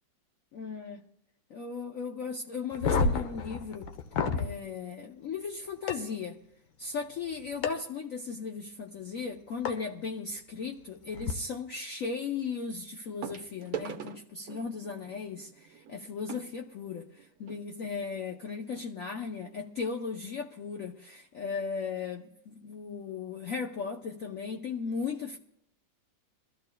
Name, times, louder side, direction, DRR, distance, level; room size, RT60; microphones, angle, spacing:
voice 1, 0.5-1.0 1.5-3.9 4.3-6.4 6.8-17.1 17.4-25.4, left 5 dB, 60° left, 0.9 m, -36 dB
sound 1, 2.7-4.5 5.9-6.0 7.6-7.7 9.7-9.8 11.1-11.3, left 4 dB, 85° left, 1.7 m, -29 dB
sound 2, 9.6-9.9 11.6-11.7 13.2-17.6 18.4-18.5 18.7-18.9 19.4-19.5, right 8 dB, 60° right, 1.0 m, -43 dB
24.0 x 14.5 x 2.2 m
omnidirectional pair, 2.1 m